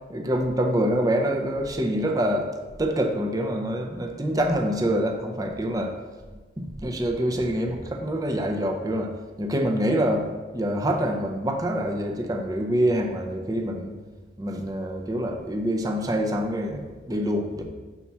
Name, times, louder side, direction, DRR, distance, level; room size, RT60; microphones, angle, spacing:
voice 1, 0.1-5.9 6.6-14.0 14.4-17.6, equal, 20° right, 2 dB, 0.6 m, -26 dB
5.8 x 4.2 x 5.9 m, 1.3 s
head